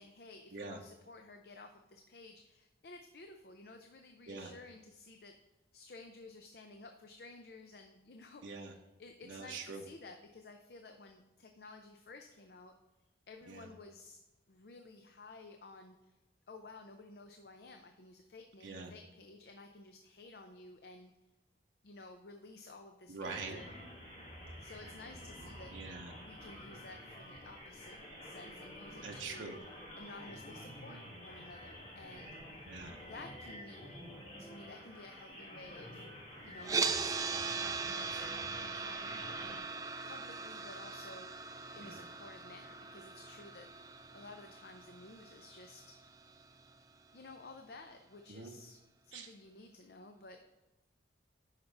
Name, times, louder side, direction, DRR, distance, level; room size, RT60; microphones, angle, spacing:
voice 1, 0.0-5.3 5.7-12.7 13.3-14.2 14.5-16.2 16.5-21.1 21.8-23.7 24.6-25.7 26.1-29.5 30.0-32.7 33.0-34.0 34.4-36.1 36.4-39.7 40.0-43.7 44.1-45.9 47.1-48.8 49.0-50.4, left 3 dB, 55° left, 5 dB, 0.5 m, -53 dB
voice 2, 8.4-8.7 9.2-9.8 13.5-13.7 18.6-18.9 23.1-23.6 25.7-26.1 29.0-29.6 32.7-33.0 41.8-42.0 48.3-48.6 49.1-49.3, right 4 dB, 85° right, 1 dB, 0.8 m, -44 dB
sound 1, 23.2-39.6, equal, 35° left, 2.2 m, -50 dB
sound 2, 36.6-46.7, right 5 dB, 20° right, 0.3 m, -40 dB
9.5 x 5.8 x 3.3 m, 1.0 s
head